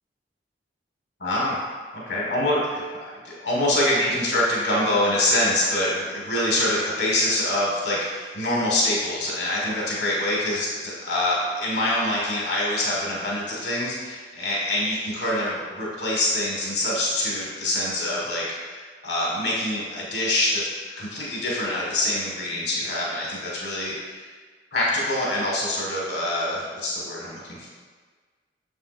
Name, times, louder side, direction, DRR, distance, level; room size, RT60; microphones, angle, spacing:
voice 1, 1.2-1.6 1.9-20.7 21.0-24.3 24.7-27.7, left 1 dB, 75° left, -5 dB, 1.7 m, -25 dB
7.3 x 7.0 x 2.6 m, 1.5 s
head